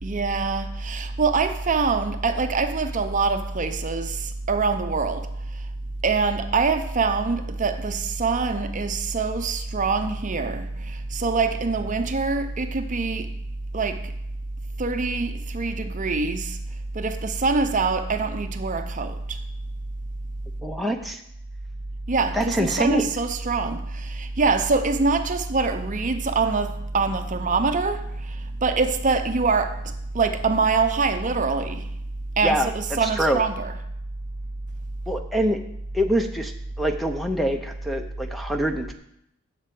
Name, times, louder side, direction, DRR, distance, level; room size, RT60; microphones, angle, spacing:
voice 1, 0.0-5.3 6.0-13.3 13.7-14.1 14.8-16.6 16.9-19.4 22.1-31.9 32.4-33.8, right 4 dB, 35° right, 0.7 m, -24 dB
voice 2, 20.6-21.2 22.3-23.1 32.4-33.4 35.1-35.6 35.9-36.5 36.8-38.9, right 1 dB, ahead, 0.6 m, -25 dB
7.8 x 6.7 x 7.8 m
head